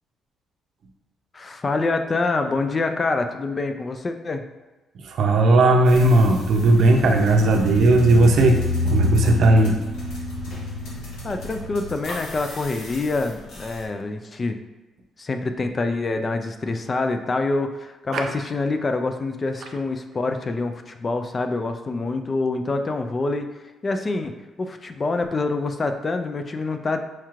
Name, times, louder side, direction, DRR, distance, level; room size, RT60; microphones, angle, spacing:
voice 1, 1.3-4.4 11.2-14.6 15.2-23.5 23.8-27.0, left 3 dB, 35° left, 7 dB, 0.3 m, -26 dB
voice 2, 5.0-8.6 8.8-9.8 18.1-18.3, right 2 dB, 65° right, 3 dB, 0.5 m, -16 dB
sound 1, 5.9-13.8, left 2 dB, 80° left, 1.1 m, -29 dB
4.4 x 3.0 x 2.4 m, 1.2 s
cardioid pair, 90°, 0 cm